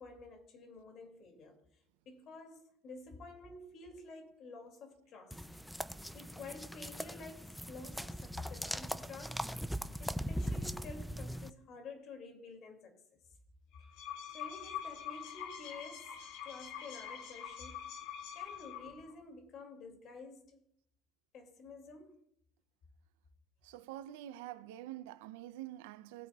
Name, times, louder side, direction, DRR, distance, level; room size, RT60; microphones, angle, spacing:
voice 1, 0.0-1.6 2.1-5.5 6.1-9.5 10.0-13.0 14.3-17.9 18.3-20.6 21.3-22.2, left 3 dB, 40° left, 2.3 m, -50 dB
sound 1, 5.3-11.5, equal, ahead, 0.3 m, -40 dB
sound 2, 13.7-19.1, left 9 dB, 70° left, 2.2 m, -45 dB
voice 2, 23.6-26.3, right 13 dB, 90° right, 0.5 m, -46 dB
19.0 x 8.9 x 2.3 m
cardioid pair, 155°, 0 cm